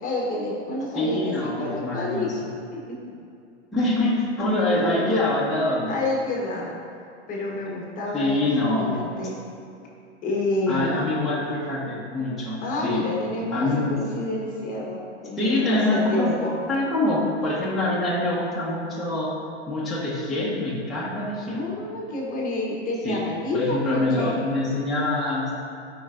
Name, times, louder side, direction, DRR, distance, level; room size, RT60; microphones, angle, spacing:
voice 1, 0.0-2.3 2.7-3.0 5.9-6.8 7.3-8.5 8.8-9.4 10.2-11.0 12.6-16.6 21.5-24.4, left 2 dB, 25° left, -3 dB, 1.1 m, -29 dB
voice 2, 0.9-2.4 3.7-6.0 8.1-9.0 10.7-13.1 13.5-14.0 15.4-16.3 16.7-19.3 19.7-21.6 23.0-23.2 23.5-25.5, left 2 dB, ahead, -9 dB, 1.1 m, -25 dB
12.0 x 4.7 x 2.5 m, 2.5 s
hypercardioid pair, 135°, 35 cm